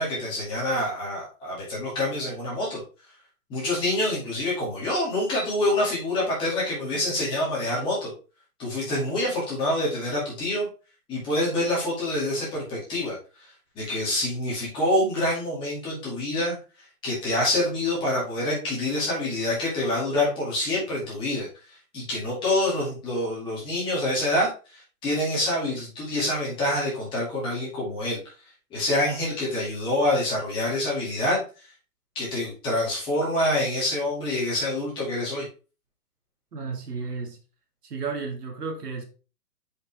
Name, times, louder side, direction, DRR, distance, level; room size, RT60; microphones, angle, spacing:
voice 1, 0.0-2.8 3.5-8.1 8.6-10.7 11.1-13.2 13.8-16.6 17.0-21.5 21.9-28.2 28.7-31.4 32.2-35.5, left 1 dB, 10° left, 2.0 m, -26 dB
voice 2, 36.5-37.4 37.8-39.0, right 4 dB, 80° right, 2.1 m, -33 dB
6.3 x 5.2 x 3.4 m
hypercardioid pair, 170°, 46 cm